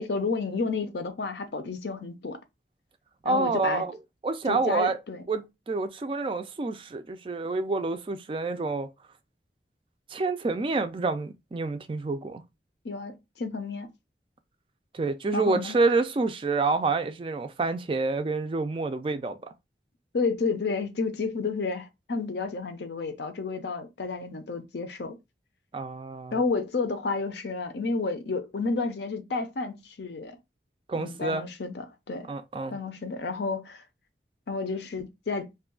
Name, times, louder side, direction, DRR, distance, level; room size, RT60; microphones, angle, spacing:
voice 1, 0.0-2.4 3.2-3.9 4.5-5.2 12.8-13.9 15.3-15.8 20.1-25.2 26.3-30.4 30.9-32.3 32.7-33.8 34.5-35.5, left 4 dB, 70° left, 0.6 m, -31 dB
voice 2, 3.2-3.9 4.2-5.0 5.3-8.9 10.1-12.4 14.9-19.4 25.7-26.4 30.9-31.5 32.3-32.8, right 3 dB, 30° right, 0.3 m, -28 dB
2.7 x 2.3 x 3.7 m
head